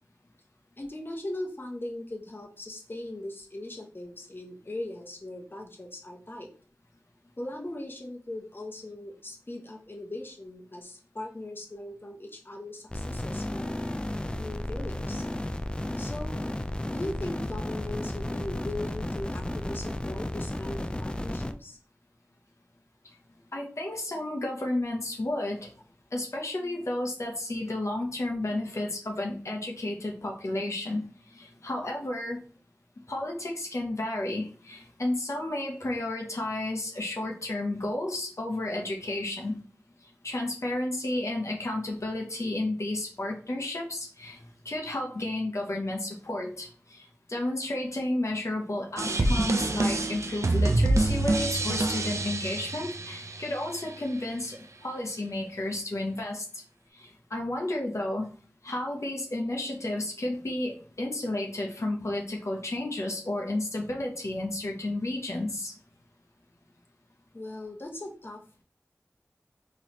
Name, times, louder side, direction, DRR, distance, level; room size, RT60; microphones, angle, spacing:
voice 1, 0.8-6.5 7.4-13.7 14.4-15.3 16.0-16.5 16.9-21.8 67.3-68.6, left 1 dB, 45° left, 1 dB, 0.9 m, -39 dB
sound 1, 12.9-21.5, left 1 dB, 20° left, 0.3 m, -33 dB
voice 2, 23.5-25.7 26.1-31.0 31.3-32.4 33.1-39.6 40.2-44.4 44.6-47.0 47.3-54.6 54.8-56.4 57.0-58.3 58.6-65.7, left 1 dB, 70° left, 0 dB, 0.8 m, -32 dB
sound 2, 49.0-53.9, right 2 dB, 75° right, 0.5 m, -26 dB
4.1 x 3.1 x 3.0 m, 0.40 s
wide cardioid pair, 45°, 5 cm